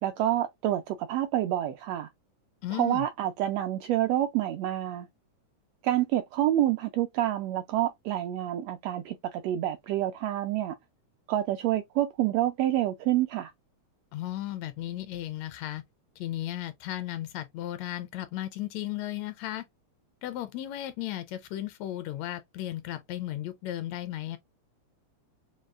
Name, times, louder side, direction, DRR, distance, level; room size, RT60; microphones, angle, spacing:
voice 1, 0.0-2.1 2.7-5.1 5.8-10.7 11.3-13.5, right 13 dB, 80° right, 1.4 m, -28 dB
voice 2, 2.6-3.1 14.1-15.8 16.2-19.6 20.2-24.4, left 13 dB, 80° left, 1.6 m, -35 dB
6.3 x 2.3 x 2.3 m
omnidirectional pair, 3.3 m